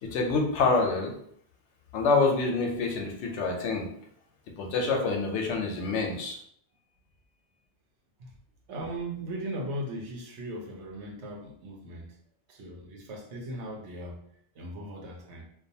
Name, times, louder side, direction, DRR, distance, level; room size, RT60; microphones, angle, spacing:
voice 1, 0.0-1.1 1.9-3.9 4.6-6.4, left 4 dB, 85° left, 2 dB, 0.9 m, -26 dB
voice 2, 8.7-12.1 12.5-14.2 14.5-15.4, right 1 dB, 85° right, 0 dB, 1.0 m, -38 dB
2.4 x 2.3 x 2.6 m, 0.67 s
omnidirectional pair, 1.1 m